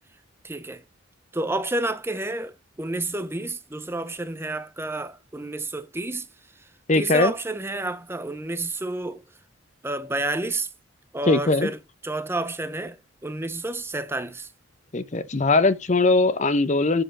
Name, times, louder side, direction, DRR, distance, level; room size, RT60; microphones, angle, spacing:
voice 1, 0.4-0.8 1.3-6.3 6.6-9.2 9.8-10.7 11.1-14.5, right 2 dB, 10° right, 0.6 m, -30 dB
voice 2, 6.9-7.3 11.3-11.7 14.9-17.0, left 3 dB, 35° left, 0.7 m, -20 dB
7.7 x 6.8 x 4.9 m
head